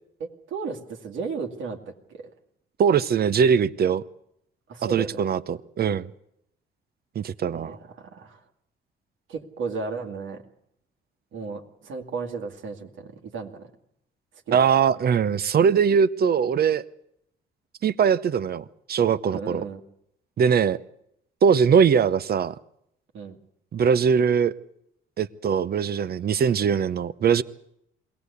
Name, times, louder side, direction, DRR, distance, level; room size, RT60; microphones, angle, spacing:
voice 1, 0.2-2.3 4.7-5.3 7.5-8.4 9.3-10.4 11.3-13.7 14.5-14.6 19.2-19.8 23.1-23.4, right 4 dB, 75° right, 2 dB, 2.3 m, -34 dB
voice 2, 2.8-4.0 4.8-6.1 7.1-7.8 14.5-16.8 17.8-19.6 20.4-20.8 21.4-22.5 23.7-24.5 25.2-27.4, right 7 dB, 50° right, 15 dB, 0.8 m, -21 dB
22.0 x 17.5 x 8.3 m, 0.76 s
cardioid pair, 90°, 20 cm